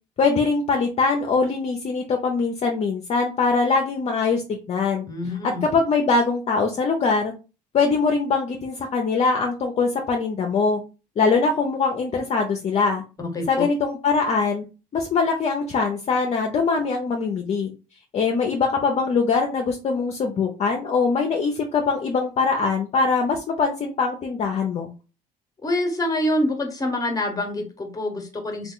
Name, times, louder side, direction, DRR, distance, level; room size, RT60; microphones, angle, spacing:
voice 1, 0.2-5.0 5.4-7.3 7.7-10.8 11.2-13.0 13.5-14.6 14.9-17.7 18.1-24.9, left 4 dB, 40° left, 2 dB, 0.6 m, -22 dB
voice 2, 5.1-5.7 13.2-13.7 25.6-28.7, left 1 dB, 20° left, 4 dB, 1.0 m, -26 dB
2.9 x 2.3 x 3.7 m, 0.32 s
cardioid pair, 110°, 17 cm